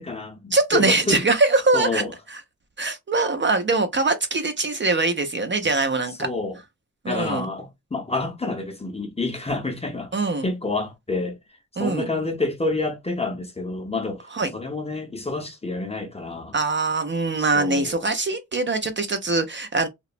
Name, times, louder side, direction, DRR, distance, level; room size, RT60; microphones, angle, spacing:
voice 1, 0.0-1.2 1.7-2.1 6.2-6.6 7.1-10.2 10.4-11.4 11.8-14.3 14.5-16.6 17.4-18.0, left 3 dB, 20° left, 0.5 m, -28 dB
voice 2, 0.5-2.0 2.3-2.4 2.8-6.3 7.0-7.5 10.1-10.5 11.8-12.1 14.3-14.5 16.5-19.9, right 3 dB, 40° right, 0.4 m, -22 dB
2.9 x 2.0 x 2.4 m
wide cardioid pair, 145°, 31 cm